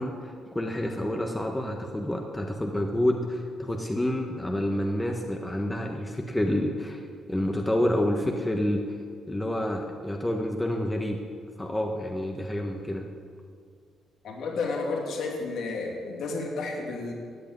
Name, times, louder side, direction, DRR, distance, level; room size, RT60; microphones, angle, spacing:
voice 1, 0.0-7.0 7.3-8.8 9.3-11.2 11.6-13.1, left 1 dB, 10° left, 2 dB, 1.3 m, -28 dB
voice 2, 14.2-17.1, left 3 dB, 70° left, 0 dB, 2.7 m, -31 dB
14.0 x 8.4 x 9.4 m, 2.2 s
cardioid pair, 90°, 0 cm